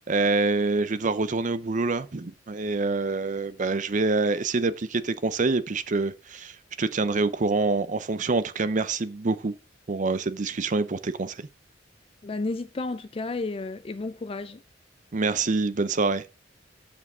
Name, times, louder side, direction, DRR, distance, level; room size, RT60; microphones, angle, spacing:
voice 1, 0.1-9.5 9.9-11.5 15.1-16.3, right 3 dB, 45° right, 0.6 m, -26 dB
voice 2, 12.2-14.6, left 3 dB, 30° left, 0.4 m, -32 dB
8.4 x 7.2 x 4.8 m
head